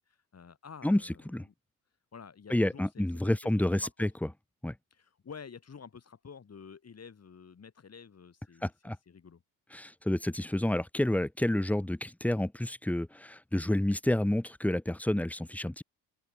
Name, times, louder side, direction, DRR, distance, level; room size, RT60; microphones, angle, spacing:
voice 1, 0.0-1.5 2.1-3.1 3.4-4.1 4.9-8.7 9.1-9.4, left 6 dB, 30° left, 5.5 m, -50 dB
voice 2, 2.5-4.1 4.6-4.7 8.6-9.0 9.7-15.8, left 1 dB, 5° left, 1.1 m, -29 dB
figure-of-eight pair, 55°, 47 cm